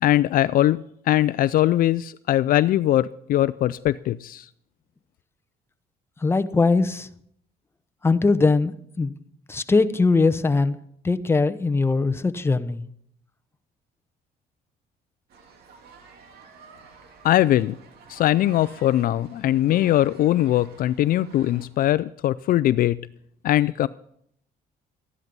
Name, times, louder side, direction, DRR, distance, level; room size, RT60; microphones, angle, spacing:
voice 1, 0.0-4.5 17.2-17.7 18.1-23.0 23.4-23.9, left 13 dB, 60° left, 17 dB, 0.4 m, -21 dB
voice 2, 6.2-7.1 8.0-9.1 9.5-10.8 11.0-12.8, left 3 dB, 15° left, 11 dB, 0.8 m, -21 dB
sound 1, 15.3-21.7, right 5 dB, 70° right, 2.6 m, -50 dB
13.5 x 11.0 x 5.3 m, 0.70 s
cardioid pair, 110°, 17 cm